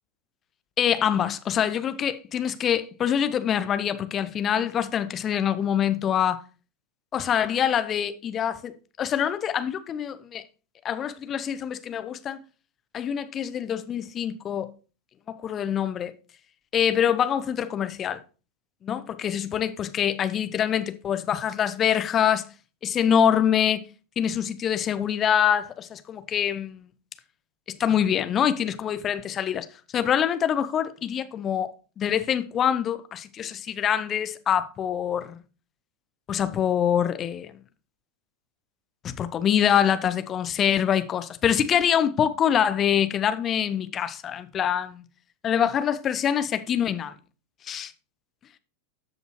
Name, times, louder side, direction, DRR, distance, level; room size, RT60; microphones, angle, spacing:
voice 1, 0.8-6.4 7.1-10.4 10.8-12.4 12.9-14.7 15.3-16.1 16.7-18.2 18.8-22.5 22.8-23.8 24.2-26.9 27.7-29.7 29.9-35.4 36.3-37.6 39.0-45.0 45.4-47.1 47.6-47.9, left 9 dB, 25° left, 0.7 m, -25 dB
13.0 x 5.4 x 3.0 m
figure-of-eight pair, 90°, 0 cm